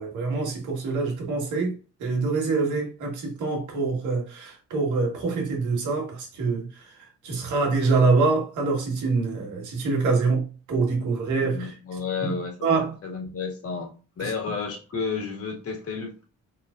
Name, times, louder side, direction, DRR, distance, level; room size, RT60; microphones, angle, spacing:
voice 1, 0.0-11.7 12.2-12.9 14.2-14.3, right 4 dB, 80° right, 1.8 m, -25 dB
voice 2, 11.4-12.7 13.0-16.2, left 5 dB, 50° left, 2.2 m, -32 dB
4.4 x 4.2 x 2.6 m
cardioid pair, 90°, 30 cm